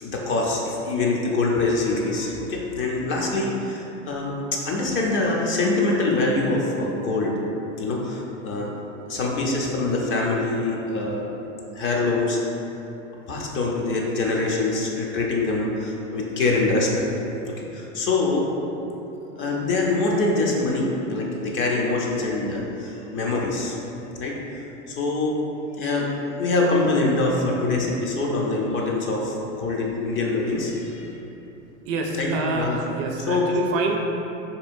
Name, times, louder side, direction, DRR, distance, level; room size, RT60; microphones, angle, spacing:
voice 1, 0.0-4.3 4.6-7.3 7.8-8.7 9.1-11.3 11.7-12.4 13.3-17.0 17.7-18.5 19.3-23.8 24.1-24.4 24.9-25.4 25.8-31.1 32.1-32.3 32.5-32.8 33.3-33.5, left 2 dB, 30° left, -2 dB, 0.5 m, -24 dB
voice 2, 31.9-34.0, right 3 dB, 50° right, 2 dB, 0.4 m, -27 dB
3.9 x 2.7 x 2.5 m, 3.0 s
hypercardioid pair, 100°, 39 cm